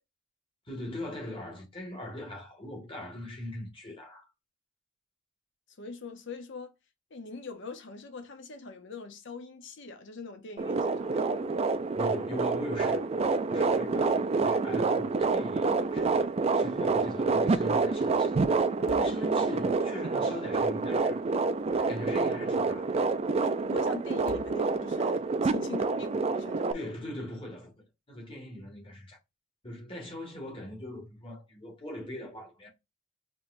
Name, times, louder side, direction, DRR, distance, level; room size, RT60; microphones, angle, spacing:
voice 1, 0.7-4.3 11.9-16.3 16.5-18.3 18.8-21.3 21.7-23.0 26.7-29.2 29.6-32.7, left 1 dB, 30° left, 1.7 m, -41 dB
voice 2, 5.8-6.7 7.1-11.5 23.4-26.9, left 4 dB, 65° left, 0.8 m, -43 dB
sound 1, 10.6-26.7, right 4 dB, 30° right, 0.4 m, -27 dB
sound 2, 15.9-16.4 16.7-16.8 18.6-19.7 21.4-22.3 24.1-25.1, left 3 dB, 45° left, 0.5 m, -50 dB
5.5 x 3.0 x 2.6 m
head